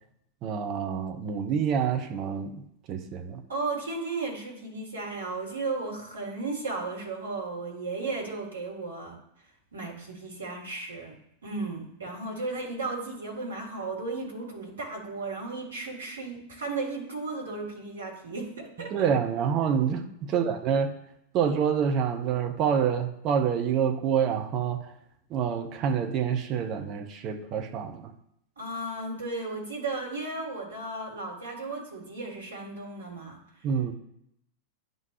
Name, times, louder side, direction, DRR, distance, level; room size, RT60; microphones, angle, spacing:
voice 1, 0.4-2.6 2.9-3.4 18.9-20.9 21.3-24.9 25.3-28.1 33.6-33.9, right 7 dB, 35° right, 6 dB, 0.8 m, -27 dB
voice 2, 3.5-9.2 9.7-11.1 11.4-19.1 20.3-20.5 28.6-33.4, right 3 dB, 70° right, -2 dB, 2.1 m, -35 dB
10.5 x 3.9 x 3.1 m, 0.78 s
figure-of-eight pair, 90°, 0 cm